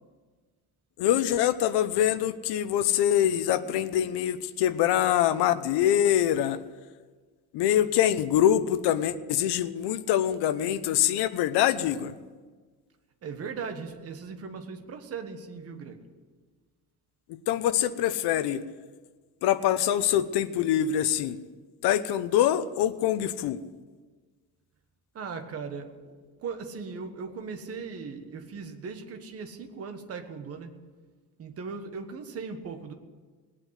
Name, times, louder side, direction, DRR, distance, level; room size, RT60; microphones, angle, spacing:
voice 1, 1.0-6.6 7.5-12.1 17.3-18.6 19.4-21.4 21.8-23.6, left 11 dB, 75° left, 12 dB, 0.9 m, -24 dB
voice 2, 13.2-16.0 25.1-26.1 26.4-30.7 31.4-32.9, right 5 dB, 35° right, 6 dB, 1.4 m, -38 dB
19.0 x 8.8 x 8.2 m, 1.4 s
cardioid pair, 170°, 39 cm